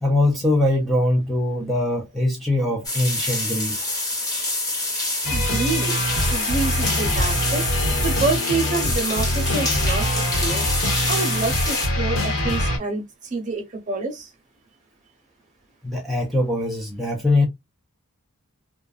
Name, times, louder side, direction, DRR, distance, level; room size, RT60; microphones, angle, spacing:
voice 1, 0.0-3.9 15.8-17.5, left 1 dB, ahead, 0.4 m, -22 dB
sound 1, 2.8-11.9, left 2 dB, 15° left, 1.0 m, -27 dB
sound 2, 5.2-12.8, left 1 dB, 60° left, 1.1 m, -24 dB
voice 2, 5.3-7.7 8.0-10.7 11.1-14.3, right 4 dB, 35° right, 0.8 m, -28 dB
2.4 x 2.3 x 2.4 m
head